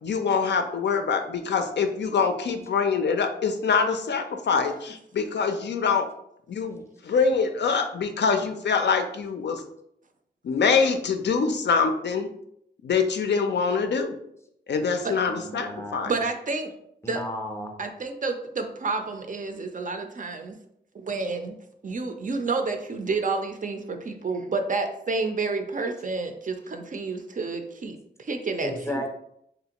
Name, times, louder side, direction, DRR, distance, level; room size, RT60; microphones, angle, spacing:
voice 1, 0.0-6.1 6.5-9.6 10.4-12.3 12.8-14.2 14.7-16.1, left 5 dB, 70° left, 6 dB, 0.4 m, -24 dB
voice 2, 15.3-16.1 17.0-17.8 28.6-29.1, left 1 dB, 15° left, 4 dB, 0.5 m, -34 dB
voice 3, 16.1-16.7 17.1-17.2 17.8-20.6 20.9-21.6 21.8-29.0, right 3 dB, 45° right, 5 dB, 0.4 m, -30 dB
3.2 x 2.5 x 2.9 m, 0.75 s
wide cardioid pair, 75°, 19 cm